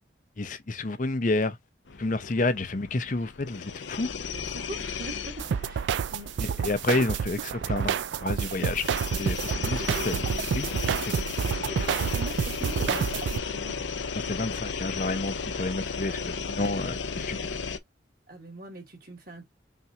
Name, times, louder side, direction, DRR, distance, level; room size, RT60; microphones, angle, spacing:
voice 1, 0.4-1.6 2.0-4.1 6.4-8.9 9.2-10.2 10.5-10.7 11.0-11.2 14.3-17.5, left 2 dB, 45° left, 0.7 m, -30 dB
sound 1, 1.9-17.8, left 5 dB, 80° left, 0.6 m, -35 dB
voice 2, 4.2-6.3 9.6-10.1 11.4-13.9 16.0-16.4 18.3-19.5, right 1 dB, 50° right, 2.5 m, -42 dB
sound 2, 5.4-13.4, right 7 dB, 75° right, 0.3 m, -29 dB
5.8 x 2.6 x 2.8 m
head